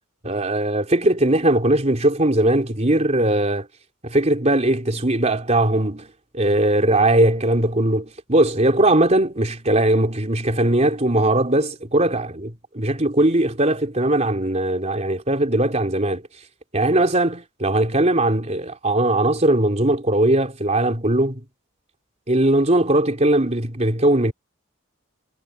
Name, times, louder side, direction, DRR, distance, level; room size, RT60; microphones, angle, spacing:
voice 1, 0.2-3.7 4.0-16.2 16.7-21.4 22.3-24.3, right 1 dB, 30° right, 3.5 m, -19 dB
head